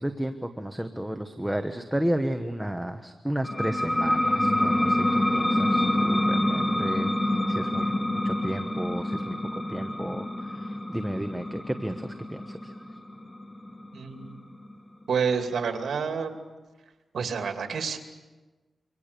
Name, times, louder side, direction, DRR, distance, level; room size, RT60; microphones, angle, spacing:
voice 1, 0.0-12.8, right 1 dB, 5° right, 6 dB, 1.3 m, -33 dB
sound 1, 3.4-14.7, left 1 dB, 20° left, 2.2 m, -27 dB
voice 2, 13.9-14.3 15.1-16.3 17.1-18.0, right 6 dB, 85° right, 5 dB, 2.6 m, -28 dB
27.0 x 25.0 x 6.8 m, 1.2 s
wide cardioid pair, 95°, 0 cm